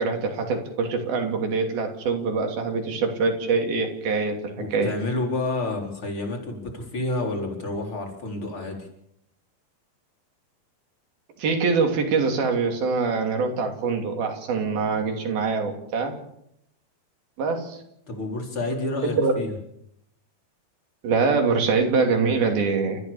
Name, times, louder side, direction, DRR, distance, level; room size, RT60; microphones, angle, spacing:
voice 1, 0.0-4.9 11.4-16.2 17.4-17.8 19.0-19.3 21.0-23.0, right 4 dB, 85° right, 3 dB, 4.9 m, -24 dB
voice 2, 4.6-8.9 18.1-19.6, left 2 dB, 35° left, 1 dB, 4.9 m, -29 dB
29.5 x 14.5 x 7.1 m, 0.76 s
omnidirectional pair, 4.1 m